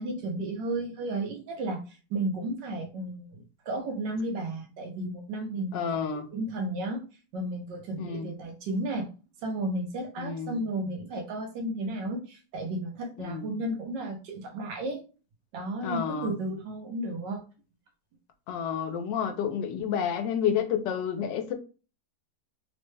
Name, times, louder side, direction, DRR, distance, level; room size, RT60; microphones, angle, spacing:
voice 1, 0.0-1.8 2.1-5.8 6.3-7.0 7.3-9.1 9.4-15.0 15.5-17.4, right 1 dB, 90° right, 1.5 m, -33 dB
voice 2, 5.7-6.3 8.0-8.3 10.2-10.6 13.2-13.5 15.8-16.3 18.5-21.5, left 8 dB, 90° left, 1.3 m, -30 dB
3.7 x 2.1 x 3.2 m
omnidirectional pair, 1.9 m